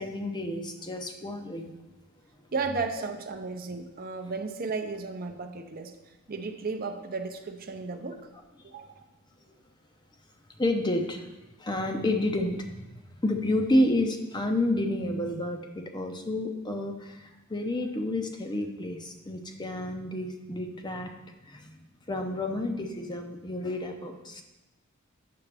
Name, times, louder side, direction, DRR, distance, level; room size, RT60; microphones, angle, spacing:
voice 1, 0.0-1.7 10.6-11.3 11.6-21.1 21.4-24.4, left 1 dB, 20° left, 4 dB, 0.6 m, -30 dB
voice 2, 2.5-5.9 6.3-8.2 8.6-9.0, right 4 dB, 40° right, 6 dB, 0.6 m, -34 dB
8.5 x 6.9 x 3.4 m, 1.0 s
head